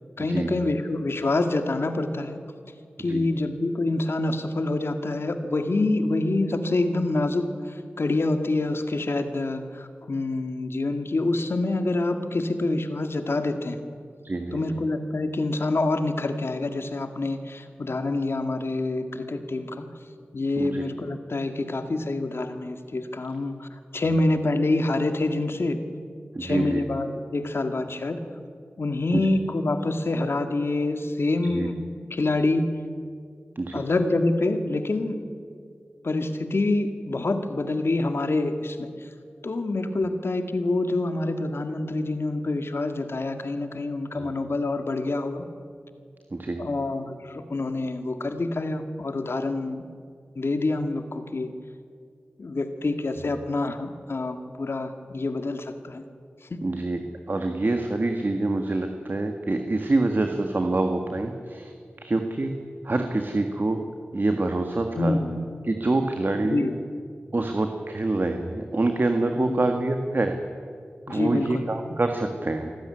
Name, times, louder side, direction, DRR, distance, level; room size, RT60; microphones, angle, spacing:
voice 1, 0.2-2.4 3.0-13.8 14.5-19.9 20.3-25.8 26.4-28.2 28.8-31.8 32.1-32.7 33.7-35.3 36.0-39.1 39.4-45.5 46.6-49.8 50.4-51.5 52.4-56.1 56.5-56.6 65.0-65.4 66.4-66.8 69.5-69.6 71.1-71.7, left 2 dB, 65° left, 8 dB, 1.8 m, -26 dB
voice 2, 14.2-14.6 20.6-20.8 26.3-26.8 29.1-29.2 31.5-31.7 33.5-33.8 44.1-44.2 46.3-46.6 56.6-61.7 62.0-62.5 62.8-63.8 64.1-66.7 67.3-70.3 71.1-72.7, right 2 dB, 45° right, 5 dB, 1.7 m, -26 dB
25.5 x 12.5 x 9.8 m, 2.2 s
cardioid pair, 45°, 4 cm